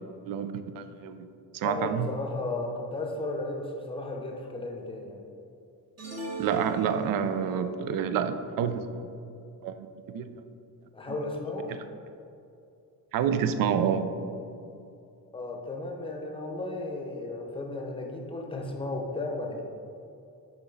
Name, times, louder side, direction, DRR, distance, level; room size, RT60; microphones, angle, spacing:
voice 1, 0.3-1.3 1.5-2.1 6.4-9.1 9.6-9.9 10.1-10.3 13.1-14.1, right 8 dB, 70° right, 10 dB, 0.5 m, -28 dB
voice 2, 1.6-5.2 10.9-11.8 15.3-19.6, left 2 dB, 15° left, 1 dB, 0.7 m, -34 dB
sound 1, 6.0-7.5, right 2 dB, 45° right, 1.4 m, -38 dB
7.1 x 5.0 x 3.8 m, 2.6 s
cardioid pair, 170°, 35 cm